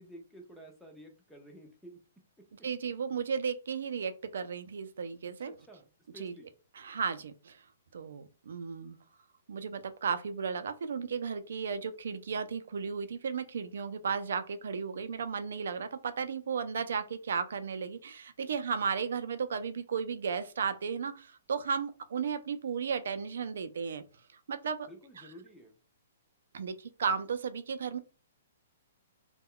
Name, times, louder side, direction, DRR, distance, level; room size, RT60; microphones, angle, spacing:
voice 1, 0.0-2.0 5.4-6.5 24.9-25.8, equal, ahead, 0.4 m, -52 dB
voice 2, 2.6-5.5 6.1-6.3 6.7-7.6 7.9-9.0 9.5-24.0 24.5-24.9 26.5-28.0, right 6 dB, 70° right, 0.4 m, -34 dB
2.2 x 2.1 x 3.6 m
hypercardioid pair, 170°, 0 cm